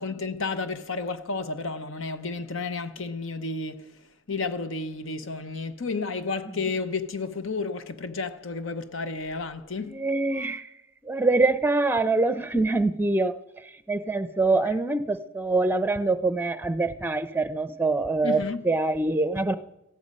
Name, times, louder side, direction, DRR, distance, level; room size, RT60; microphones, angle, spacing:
voice 1, 0.0-10.0 10.4-10.5 18.2-18.6, left 4 dB, 70° left, 0.8 m, -32 dB
voice 2, 9.9-10.7 11.0-13.4 13.6-19.5, right 3 dB, 10° right, 0.6 m, -24 dB
18.0 x 14.0 x 5.4 m
head